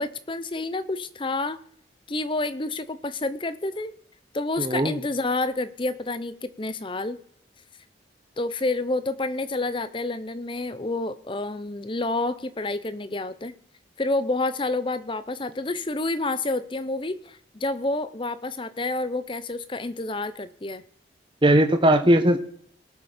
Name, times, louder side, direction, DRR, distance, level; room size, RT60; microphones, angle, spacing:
voice 1, 0.0-1.6 2.1-3.9 4.3-7.2 8.4-13.5 14.0-20.8, left 2 dB, 25° left, 14 dB, 0.7 m, -29 dB
voice 2, 4.6-5.0 21.4-22.4, right 1 dB, 25° right, 8 dB, 1.0 m, -18 dB
19.0 x 7.0 x 5.0 m, 0.63 s
head